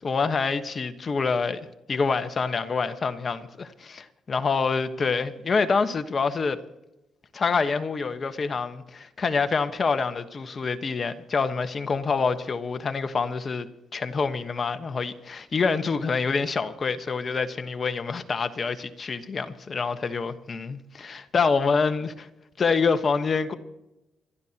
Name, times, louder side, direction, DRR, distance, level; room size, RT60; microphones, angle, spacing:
voice 1, 0.0-1.6 1.9-6.6 7.3-13.7 13.9-22.3 22.6-23.5, left 5 dB, 40° left, 1.2 m, -26 dB
27.5 x 12.5 x 2.9 m
cardioid pair, 90°, 0 cm